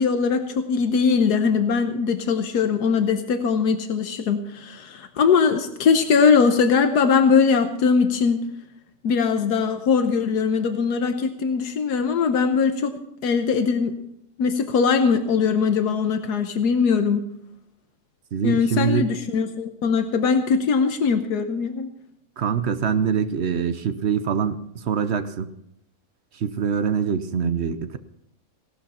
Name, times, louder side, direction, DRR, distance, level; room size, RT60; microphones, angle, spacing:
voice 1, 0.0-8.4 9.0-12.9 13.2-13.9 14.4-17.3 18.4-21.9, left 5 dB, 85° left, 7 dB, 1.5 m, -21 dB
voice 2, 18.3-19.1 22.4-25.5 26.3-28.0, right 7 dB, 55° right, 11 dB, 0.9 m, -24 dB
17.0 x 12.5 x 4.3 m, 0.75 s
omnidirectional pair, 1.6 m